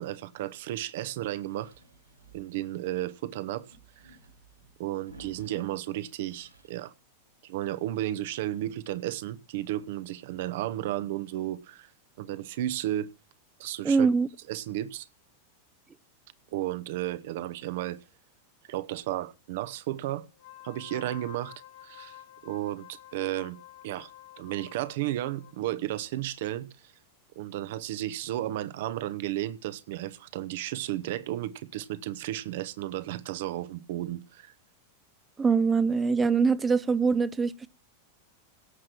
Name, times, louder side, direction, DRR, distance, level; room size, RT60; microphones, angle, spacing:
voice 1, 0.0-1.7 2.3-3.7 4.0-4.2 4.8-6.9 7.4-11.9 12.2-13.1 13.6-14.1 14.5-15.1 16.5-18.0 18.7-20.3 20.6-21.5 21.8-23.6 23.8-24.1 24.4-26.7 27.3-34.5, right 14 dB, 55° right, 1.0 m, -33 dB
sound 1, 1.4-3.2 3.6-5.8 6.2-6.9 7.3-7.4 7.6-7.7 9.0-9.1, right 2 dB, 80° right, 5.6 m, -54 dB
voice 2, 13.8-14.3 35.4-37.7, right 5 dB, 15° right, 0.6 m, -23 dB
Wind instrument woodwind instrument, 20.3-25.6, left 14 dB, 55° left, 1.0 m, -50 dB
17.5 x 7.6 x 4.5 m
figure-of-eight pair, 90°, 0 cm